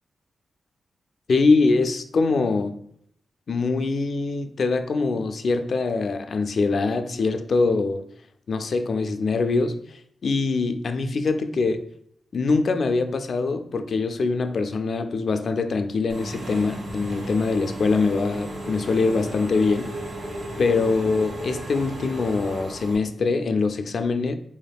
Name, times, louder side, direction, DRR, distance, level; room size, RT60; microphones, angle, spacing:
voice 1, 1.3-2.7 3.5-8.0 8.5-11.9 12.3-19.9 20.6-24.4, left 3 dB, 65° left, 0.3 m, -23 dB
Engine / Mechanisms, 16.1-23.0, right 1 dB, 85° right, 1.0 m, -34 dB
4.6 x 3.4 x 2.3 m
cardioid pair, 80°, 0 cm